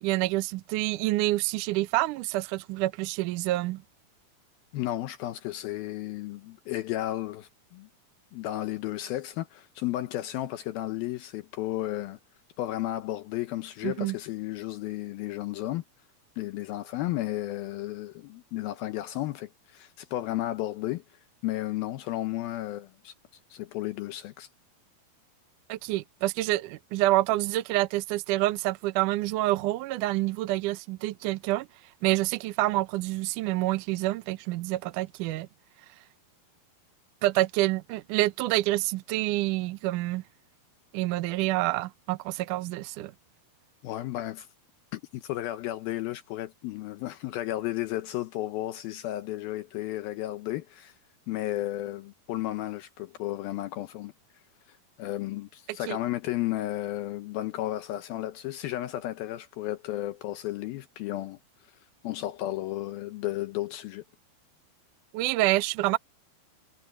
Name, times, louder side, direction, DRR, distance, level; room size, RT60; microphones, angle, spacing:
voice 1, 0.0-3.8 13.8-14.2 25.7-31.7 32.0-35.5 37.2-40.2 40.9-43.1 55.9-56.0 65.1-66.0, right 17 dB, 75° right, 2.0 m, -27 dB
voice 2, 4.7-7.9 8.3-12.2 12.6-15.8 16.4-21.0 21.4-23.1 23.5-24.5 43.8-44.5 44.9-50.9 51.3-54.1 54.7-61.4 62.0-64.0, left 15 dB, 75° left, 2.5 m, -33 dB
omnidirectional pair, 4.5 m